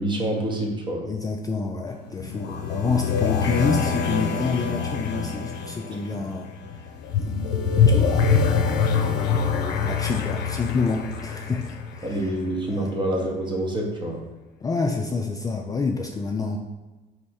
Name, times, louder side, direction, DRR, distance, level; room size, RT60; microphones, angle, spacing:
voice 1, 0.0-1.1 12.0-14.2, right 1 dB, 25° right, 0 dB, 0.9 m, -27 dB
voice 2, 1.0-6.9 7.9-8.4 9.1-12.4 12.7-12.9 14.6-16.6, left 4 dB, 20° left, 1 dB, 0.3 m, -28 dB
sound 1, 1.9-12.6, left 6 dB, 80° left, 0.5 m, -24 dB
3.4 x 3.1 x 4.2 m, 1.2 s
cardioid pair, 110°, 17 cm